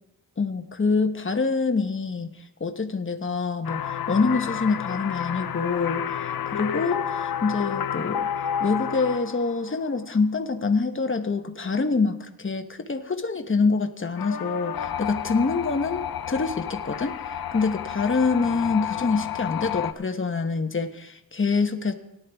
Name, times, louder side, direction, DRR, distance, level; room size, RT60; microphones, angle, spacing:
voice 1, 0.4-6.2 6.5-17.2 17.5-21.9, left 4 dB, 35° left, 7 dB, 1.0 m, -26 dB
sound 1, 3.6-9.8 14.2-19.9, left 9 dB, 85° left, 0.6 m, -30 dB
18.0 x 10.5 x 3.5 m, 0.84 s
wide cardioid pair, 70°, 35 cm